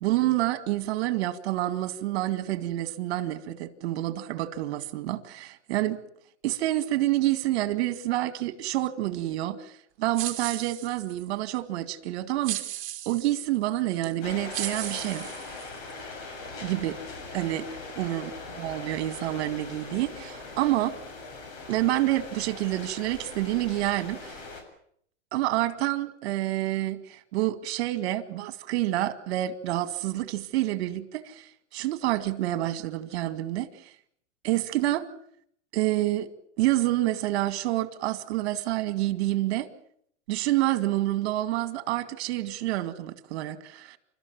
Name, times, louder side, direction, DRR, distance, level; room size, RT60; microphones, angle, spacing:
voice 1, 0.0-6.0 6.4-9.7 10.0-12.6 13.1-15.3 16.6-17.0 17.3-17.7 18.0-18.3 18.6-20.9 21.7-24.3 25.3-31.5 31.7-33.7 34.4-35.1 35.7-36.3 36.6-39.7 40.3-44.0, right 15 dB, 60° right, 13 dB, 2.2 m, -28 dB
sound 1, 10.1-11.3 12.4-13.4 14.0-14.1 14.5-15.9, right 14 dB, 35° right, 3.2 m, -35 dB
sound 2, 14.2-24.6, left 3 dB, 50° left, 7.1 m, -41 dB
29.0 x 13.5 x 9.3 m, 0.67 s
supercardioid pair, 145°, 35 cm